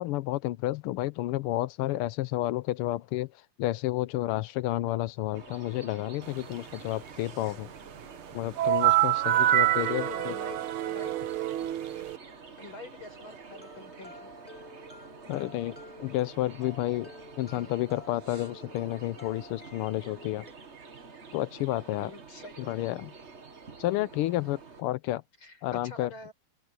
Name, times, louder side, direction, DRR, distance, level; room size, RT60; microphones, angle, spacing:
voice 1, 0.0-3.3 3.6-7.7 8.3-10.4 15.3-17.1 17.4-20.5 21.3-22.1 22.7-23.1 23.8-25.2 25.6-26.1, left 16 dB, 85° left, 1.6 m, -31 dB
sound 1, 5.3-24.8, right 5 dB, 35° right, 1.7 m, -48 dB
sound 2, 8.6-12.2, right 13 dB, 75° right, 1.7 m, -26 dB
voice 2, 9.3-11.2 12.6-14.3 17.5-17.7 22.0-22.7 25.4-26.3, left 2 dB, 65° left, 6.4 m, -46 dB
sound 3, 13.5-20.5, left 1 dB, 5° left, 2.2 m, -51 dB
open air
omnidirectional pair, 2.4 m